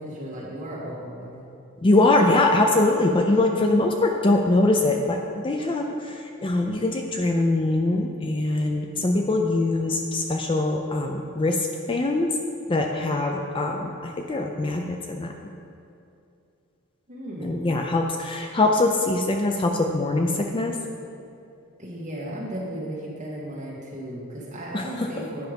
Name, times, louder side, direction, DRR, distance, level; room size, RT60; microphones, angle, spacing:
voice 1, 0.0-1.5 17.1-17.8 21.8-25.5, right 1 dB, 35° right, -5 dB, 1.9 m, -35 dB
voice 2, 1.8-12.3 12.7-15.5 17.4-20.8 24.7-25.1, left 2 dB, 25° left, 3 dB, 0.4 m, -23 dB
9.3 x 5.6 x 5.2 m, 2.6 s
head